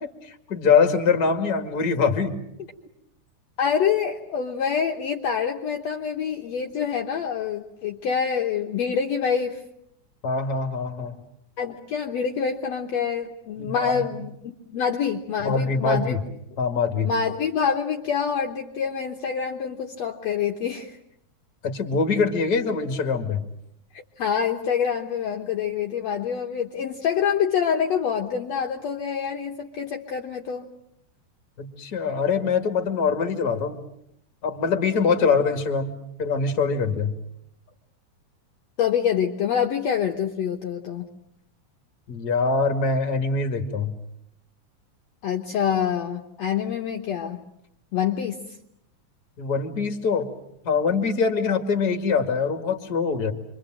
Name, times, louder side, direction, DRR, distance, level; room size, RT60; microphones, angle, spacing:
voice 1, 0.0-2.7 10.2-11.2 13.6-14.1 15.4-16.2 16.6-17.1 21.6-23.4 31.6-33.8 34.4-37.1 42.1-43.9 49.4-50.3 50.6-53.3, left 5 dB, 35° left, 6 dB, 2.4 m, -23 dB
voice 2, 3.6-9.6 11.6-16.2 17.0-21.0 23.9-30.7 38.8-41.1 45.2-47.4 47.9-48.4, left 7 dB, 60° left, 3 dB, 2.2 m, -26 dB
27.5 x 24.5 x 7.7 m, 0.76 s
omnidirectional pair, 3.7 m